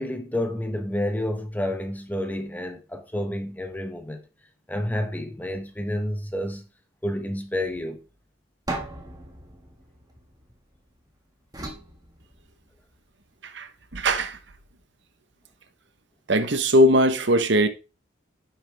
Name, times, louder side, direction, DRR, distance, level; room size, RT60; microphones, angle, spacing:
voice 1, 0.0-4.2 4.7-6.6 7.0-8.0, left 1 dB, 10° left, 1.2 m, -29 dB
sound 1, 8.7-10.9 11.5-12.9, right 2 dB, 20° right, 1.8 m, -37 dB
voice 2, 13.4-14.4 16.3-17.7, equal, 65° right, 1.1 m, -20 dB
10.5 x 7.2 x 3.5 m
head